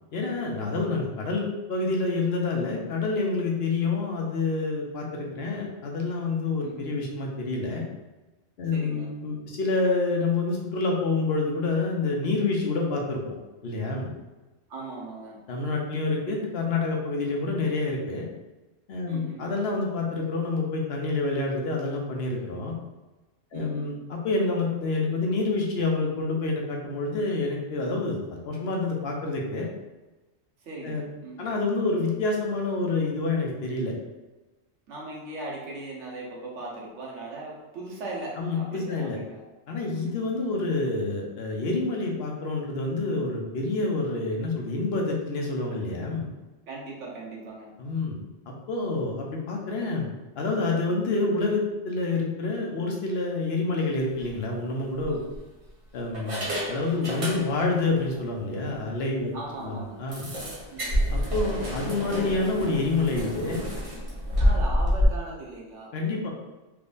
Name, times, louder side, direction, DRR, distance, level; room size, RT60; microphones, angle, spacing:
voice 1, 0.1-7.8 8.6-13.2 13.6-14.1 15.5-18.3 18.9-22.8 23.5-29.7 30.8-31.0 31.4-33.9 38.4-39.2 39.7-46.3 47.8-50.1 50.4-55.2 55.9-59.3 59.6-60.3 61.1-63.6 65.9-66.3, left 3 dB, 65° left, 0 dB, 0.9 m, -28 dB
voice 2, 0.7-1.0 6.6-6.9 8.7-9.1 14.7-15.4 19.1-19.5 23.5-23.9 30.6-31.5 34.9-39.4 39.9-40.5 46.7-47.7 59.3-60.0 60.7-61.0 64.4-65.9, right 2 dB, 85° right, -3 dB, 1.2 m, -39 dB
sound 1, 54.1-54.3 55.0-55.7 56.1-57.8 58.1-58.3 58.7-58.8 59.1-59.2 60.1-65.1, equal, 30° right, 0.8 m, -28 dB
3.6 x 3.2 x 2.5 m, 1.1 s
omnidirectional pair, 1.2 m